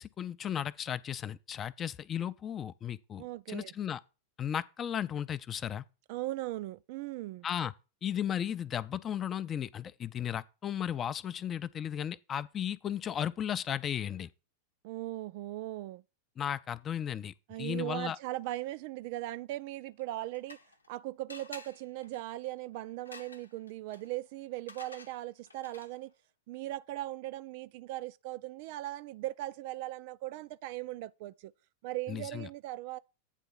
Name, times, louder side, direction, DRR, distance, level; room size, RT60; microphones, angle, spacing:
voice 1, 0.0-4.0 4.4-5.8 7.4-7.7 8.0-14.3 16.4-18.2 32.1-32.5, left 9 dB, 25° left, 0.5 m, -35 dB
voice 2, 3.2-3.8 6.1-7.5 14.8-16.0 17.5-20.6 20.9-26.1 26.5-31.5 31.8-33.0, right 16 dB, 50° right, 0.4 m, -39 dB
sound 1, 20.0-20.9 21.3-26.1, left 3 dB, 75° left, 0.8 m, -53 dB
9.1 x 3.7 x 6.9 m
figure-of-eight pair, 90°, 0 cm